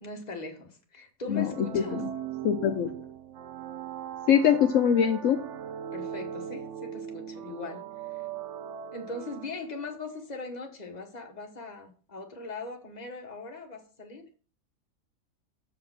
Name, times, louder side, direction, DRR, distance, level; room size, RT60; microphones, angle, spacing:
voice 1, 0.0-2.1 5.9-8.3 8.9-14.3, left 3 dB, 30° left, 3 dB, 1.4 m, -40 dB
voice 2, 1.3-2.1 2.4-2.9 4.3-5.4, left 8 dB, 70° left, 7 dB, 1.0 m, -23 dB
sound 1, 1.3-10.0, right 9 dB, 70° right, 0.9 m, -39 dB
7.1 x 4.7 x 6.1 m, 0.39 s
omnidirectional pair, 1.4 m